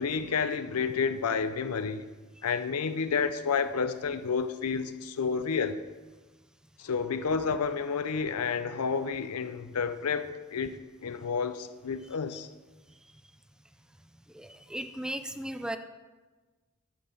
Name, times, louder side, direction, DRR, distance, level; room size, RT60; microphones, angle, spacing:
voice 1, 0.0-2.1 2.4-5.8 6.8-12.5, left 5 dB, 90° left, 0.6 m, -30 dB
voice 2, 14.3-15.8, right 1 dB, 5° right, 0.4 m, -36 dB
10.0 x 7.5 x 5.4 m
head